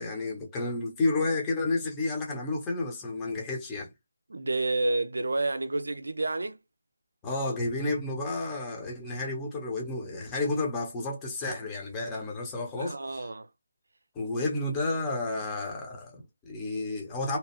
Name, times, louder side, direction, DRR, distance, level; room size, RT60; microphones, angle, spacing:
voice 1, 0.0-3.9 7.2-13.2 14.1-17.4, left 2 dB, 15° left, 0.9 m, -31 dB
voice 2, 4.3-6.6 12.8-13.5, right 2 dB, 70° right, 0.5 m, -29 dB
2.9 x 2.3 x 2.9 m
figure-of-eight pair, 160°, 0 cm